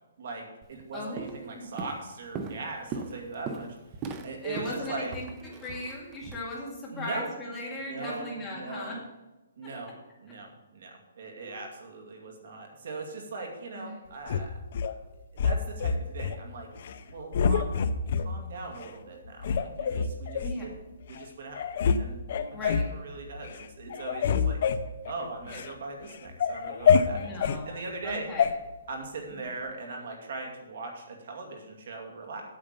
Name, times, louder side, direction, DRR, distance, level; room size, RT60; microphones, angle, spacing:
voice 1, 0.2-3.8 4.2-5.1 6.9-7.3 7.8-8.9 9.6-9.9 10.2-14.5 15.3-16.7 17.0-20.7 21.1-21.7 22.0-22.2 22.8-24.6 25.1-28.3 28.9-32.4, right 3 dB, 50° right, 2 dB, 2.3 m, -40 dB
Walk footsteps, 0.6-0.8 1.2-1.5 1.8-6.4, right 5 dB, 15° right, 0.6 m, -38 dB
voice 2, 0.9-1.4 4.4-9.0 11.3-11.7 13.7-14.1 18.2-18.4 20.4-20.7 22.5-22.9 25.5-25.6 27.1-28.5 29.3-29.4, left 1 dB, 10° left, -5 dB, 2.2 m, -38 dB
sound 1, 14.3-14.9 15.4-16.4 16.8-17.0 17.3-18.3 18.8-18.9 19.4-20.6 21.2-21.3 21.5-22.0 22.3-22.9 23.4-23.6 23.9-25.7 26.1-27.6 28.4-28.5, left 6 dB, 40° left, 0.6 m, -26 dB
8.8 x 6.9 x 6.7 m, 1.1 s
hypercardioid pair, 175°, 0 cm